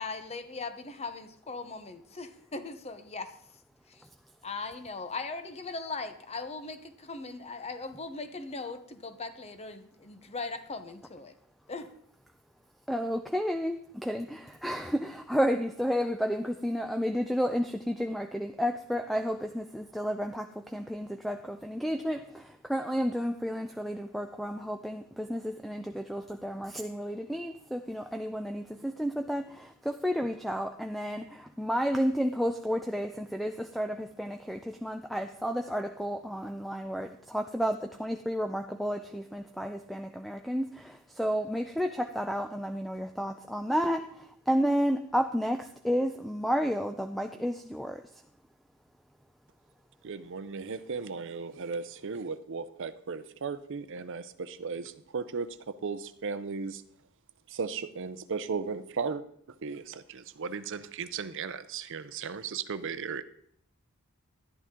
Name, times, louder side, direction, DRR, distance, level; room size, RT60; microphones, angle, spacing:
voice 1, 0.0-3.3 3.9-4.0 4.4-11.3 11.7-11.9, left 3 dB, 30° left, 9 dB, 0.8 m, -39 dB
voice 2, 12.9-48.0, equal, ahead, 6 dB, 0.4 m, -31 dB
voice 3, 50.0-55.5 55.8-56.8 57.5-59.2 59.6-63.2, right 5 dB, 60° right, 13 dB, 0.6 m, -36 dB
11.5 x 11.0 x 3.7 m, 0.65 s
head